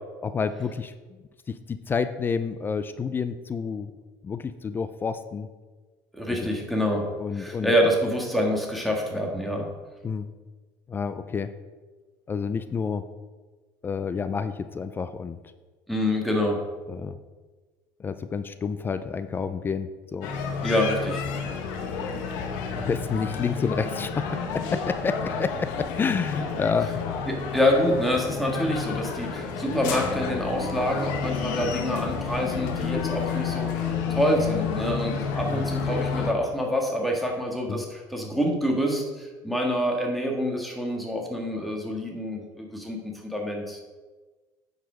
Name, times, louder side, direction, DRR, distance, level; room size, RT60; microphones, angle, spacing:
voice 1, 0.2-0.9 1.5-3.9 4.2-5.5 6.4-6.5 7.2-7.7 10.0-10.3 10.9-11.5 12.3-13.0 13.8-15.4 16.9-17.2 18.0-20.3 22.9-26.9 35.5-35.6 37.7-37.8, left 5 dB, 25° left, 11 dB, 0.4 m, -29 dB
voice 2, 6.1-7.1 7.3-9.7 15.9-16.6 20.6-21.2 27.3-43.8, equal, ahead, 0 dB, 1.8 m, -26 dB
sound 1, 20.2-36.3, left 6 dB, 85° left, 1.2 m, -30 dB
9.2 x 5.0 x 5.0 m, 1.3 s
cardioid pair, 120°, 9 cm